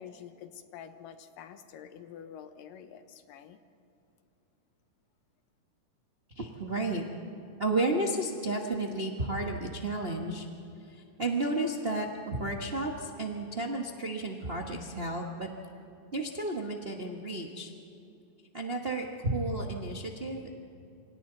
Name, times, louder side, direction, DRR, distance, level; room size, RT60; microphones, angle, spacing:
voice 1, 0.0-3.6, left 8 dB, 85° left, 8 dB, 2.8 m, -47 dB
voice 2, 6.3-7.0 7.6-10.5 10.9-15.5 16.1-17.7 18.5-20.5, right 2 dB, 85° right, 0 dB, 0.5 m, -32 dB
28.0 x 26.0 x 4.0 m, 2.8 s
omnidirectional pair, 3.8 m